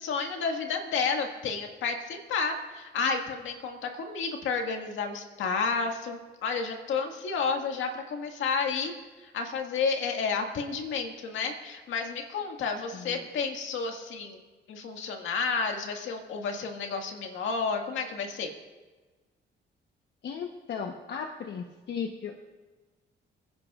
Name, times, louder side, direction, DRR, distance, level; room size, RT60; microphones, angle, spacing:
voice 1, 0.0-8.9 9.2-14.4 14.7-18.5, left 5 dB, 75° left, 3 dB, 1.8 m, -31 dB
voice 2, 20.2-22.4, left 6 dB, 60° left, 3 dB, 1.0 m, -36 dB
27.5 x 10.5 x 2.4 m, 1.3 s
cardioid pair, 90°, 20 cm